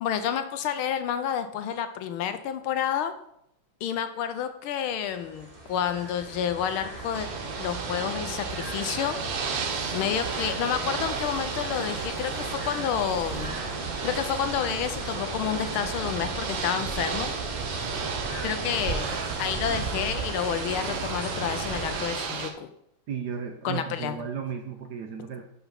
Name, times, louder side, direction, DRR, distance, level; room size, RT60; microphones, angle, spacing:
voice 1, 0.0-3.1 3.8-7.3 7.6-9.1 9.9-13.6 14.0-17.3 18.4-19.1 19.4-22.7 23.6-24.1, left 9 dB, 80° left, 9 dB, 1.5 m, -29 dB
sound 1, 4.9-22.0, right 2 dB, 20° right, 1.5 m, -36 dB
Ocean / Boat Water vehicle, 7.1-22.5, right 6 dB, 85° right, 1.9 m, -34 dB
voice 2, 23.1-25.4, right 7 dB, 65° right, 4 dB, 1.0 m, -34 dB
5.8 x 5.6 x 5.8 m, 0.74 s
omnidirectional pair, 2.4 m